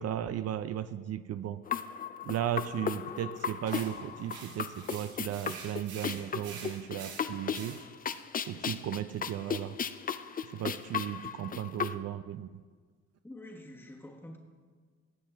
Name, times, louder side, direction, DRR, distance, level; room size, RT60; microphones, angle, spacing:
voice 1, 0.0-1.6 2.2-7.8 8.5-9.8 10.5-12.6, right 11 dB, 55° right, 13 dB, 0.4 m, -35 dB
sound 1, 1.7-12.0, left 7 dB, 30° left, 0.4 m, -36 dB
sound 2, 3.6-8.2, right 5 dB, 85° right, 1.5 m, -47 dB
voice 2, 13.2-14.4, left 1 dB, 5° left, -1 dB, 1.3 m, -47 dB
18.5 x 7.3 x 3.5 m, 1.6 s
cardioid pair, 90°, 30 cm